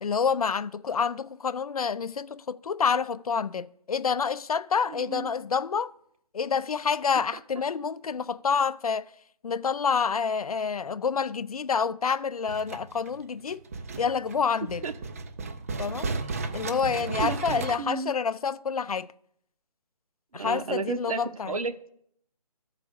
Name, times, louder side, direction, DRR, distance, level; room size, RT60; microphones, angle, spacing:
voice 1, 0.0-5.9 6.3-9.1 9.4-13.6 14.0-14.8 15.8-16.1 16.5-19.1 20.3-21.6, left 6 dB, 65° left, 0.5 m, -28 dB
voice 2, 4.8-5.3 14.8-14.9 16.2-16.3 17.1-18.1 20.3-21.9, right 4 dB, 60° right, 1.0 m, -33 dB
sound 1, 12.5-17.8, right 3 dB, 20° right, 0.4 m, -34 dB
12.0 x 4.9 x 6.8 m
figure-of-eight pair, 150°, 21 cm